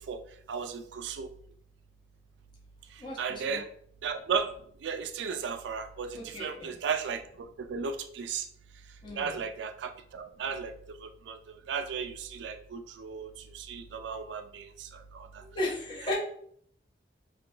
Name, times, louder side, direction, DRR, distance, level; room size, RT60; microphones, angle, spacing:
voice 1, 0.5-1.3 3.2-3.7 4.0-4.5 4.8-7.2 7.7-8.4 9.2-10.7 11.3-11.4 11.7-13.3 13.5-14.7 15.1-15.3, right 6 dB, 75° right, 8 dB, 0.3 m, -34 dB
voice 2, 3.0-3.6 6.1-6.7 9.0-9.4 15.4-16.1, left 1 dB, 25° left, -5 dB, 0.8 m, -35 dB
3.0 x 2.2 x 3.1 m, 0.64 s
head